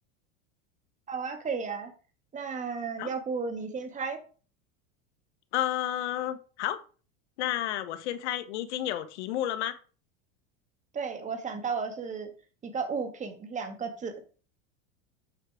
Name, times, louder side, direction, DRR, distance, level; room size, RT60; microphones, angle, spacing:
voice 1, 1.1-1.9 2.3-4.2 10.9-12.3 12.6-14.1, right 5 dB, 20° right, 1.9 m, -33 dB
voice 2, 5.5-6.8 7.4-9.8, left 12 dB, 80° left, 1.3 m, -31 dB
7.8 x 5.8 x 4.9 m
supercardioid pair, 135°, 33 cm